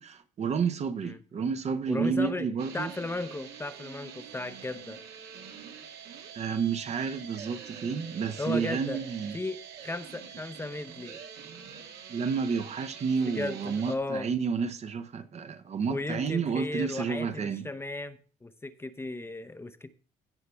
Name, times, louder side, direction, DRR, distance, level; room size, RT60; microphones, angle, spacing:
voice 1, 0.0-2.9 6.3-9.4 12.1-17.7, right 6 dB, 40° right, 0.8 m, -30 dB
voice 2, 1.9-2.5 2.7-5.0 8.4-9.0 9.3-11.2 13.3-14.3 15.9-19.9, left 2 dB, 15° left, 0.6 m, -35 dB
sound 1, 2.6-14.0, right 7 dB, 75° right, 1.6 m, -45 dB
16.0 x 5.7 x 3.3 m
cardioid pair, 110°, 17 cm